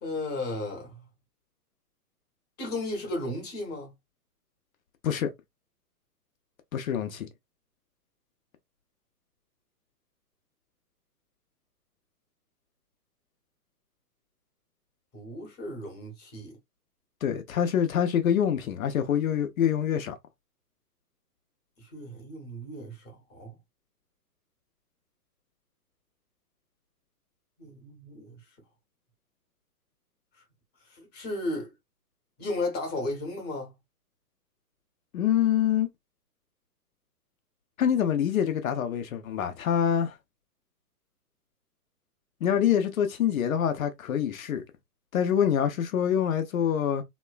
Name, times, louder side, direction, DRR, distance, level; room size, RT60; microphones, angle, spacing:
voice 1, 0.0-1.0 2.6-3.9 15.1-16.6 21.8-23.6 27.6-28.3 30.9-31.7 32.4-33.7, left 2 dB, 20° left, 1.1 m, -34 dB
voice 2, 6.7-7.3 17.2-20.2 35.1-35.9 37.8-40.2 42.4-44.6 45.1-47.0, left 9 dB, 55° left, 0.7 m, -25 dB
3.0 x 2.2 x 2.2 m
hypercardioid pair, 130°, 48 cm